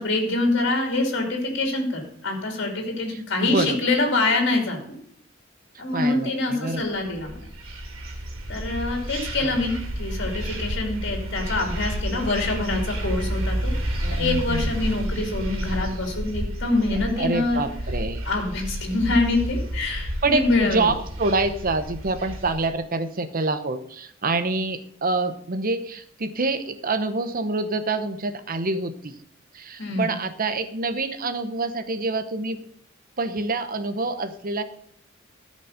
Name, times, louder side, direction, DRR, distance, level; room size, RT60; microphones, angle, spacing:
voice 1, 0.0-4.8 5.8-7.4 8.5-17.6 18.2-20.9 29.8-30.1, left 2 dB, 60° left, 2 dB, 2.6 m, -25 dB
voice 2, 3.1-3.9 5.9-6.8 9.4-9.6 14.0-14.7 17.2-18.2 20.2-29.1 29.5-32.6 33.2-34.6, right 3 dB, 45° right, 11 dB, 0.8 m, -26 dB
sound 1, 7.0-22.7, equal, 80° right, 2.6 m, -30 dB
13.5 x 5.4 x 6.4 m, 0.66 s
head